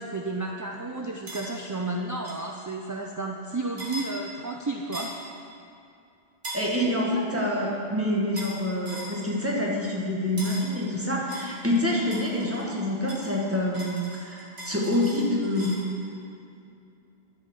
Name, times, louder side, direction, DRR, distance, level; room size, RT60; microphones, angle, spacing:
voice 1, 0.0-5.1, right 2 dB, 30° right, 0 dB, 0.4 m, -32 dB
sound 1, 1.3-1.5 2.2-2.5 3.8-4.1 4.9-5.2 6.4-6.7 8.4-8.6 8.9-9.2 10.4-10.7 11.3-12.7 13.1-15.9, right 1 dB, 70° right, 1.9 m, -39 dB
voice 2, 6.5-15.9, left 1 dB, 10° right, -4 dB, 1.6 m, -27 dB
11.0 x 5.7 x 6.6 m, 2.5 s
omnidirectional pair, 1.1 m